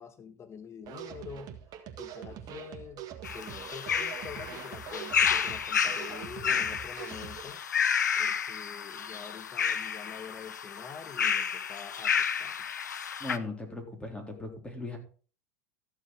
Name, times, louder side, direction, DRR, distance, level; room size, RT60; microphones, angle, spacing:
voice 1, 0.0-1.6 2.0-3.0 3.3-7.6 8.2-12.6, left 6 dB, 30° left, 1.6 m, -46 dB
sound 1, 0.8-7.5, right 10 dB, 45° right, 1.8 m, -44 dB
sound 2, 3.2-13.4, left 7 dB, 90° left, 0.7 m, -31 dB
voice 2, 13.2-15.0, left 2 dB, 10° left, 3.9 m, -38 dB
13.5 x 7.1 x 4.7 m
hypercardioid pair, 85°, 9 cm